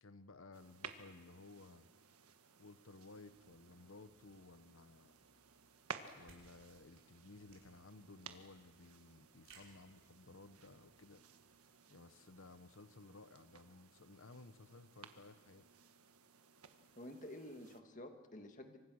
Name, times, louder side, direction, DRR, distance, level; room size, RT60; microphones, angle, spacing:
voice 1, 0.0-1.9 2.6-5.1 6.2-11.2 11.9-15.7, left 3 dB, 60° left, 12 dB, 0.9 m, -57 dB
sound 1, 0.5-17.8, right 6 dB, 80° right, 1.6 m, -57 dB
sound 2, 3.3-11.3, right 1 dB, 25° right, 6.2 m, -79 dB
sound 3, 5.4-10.6, right 5 dB, 60° right, 5.8 m, -66 dB
voice 2, 17.0-18.8, left 1 dB, 35° left, 6 dB, 1.9 m, -51 dB
28.0 x 24.5 x 6.4 m, 1.4 s
head